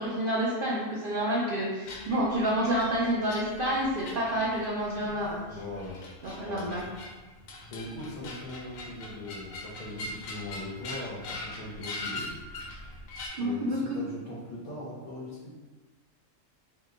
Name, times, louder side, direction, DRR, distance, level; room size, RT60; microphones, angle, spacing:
voice 1, 0.0-5.4 6.2-6.8 13.4-14.0, right 1 dB, 60° right, -6 dB, 0.6 m, -29 dB
sound 1, 1.8-13.3, left 2 dB, 80° left, 1.0 m, -42 dB
voice 2, 5.5-6.0 6.4-6.7 7.7-12.3 13.3-15.5, left 2 dB, 50° left, -6 dB, 0.7 m, -40 dB
2.8 x 2.2 x 3.7 m, 1.3 s
omnidirectional pair, 1.4 m